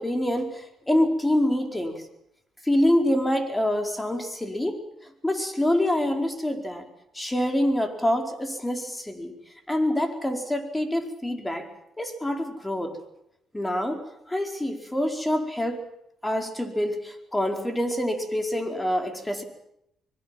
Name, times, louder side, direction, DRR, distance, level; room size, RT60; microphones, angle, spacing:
voice 1, 0.0-2.0 2.6-4.8 5.2-6.9 7.1-9.3 9.7-11.7 12.0-12.9 13.5-14.0 14.3-15.8 16.2-19.4, left 1 dB, 10° left, 5 dB, 4.6 m, -26 dB
24.5 x 22.0 x 7.7 m, 0.78 s
cardioid pair, 90°, 0 cm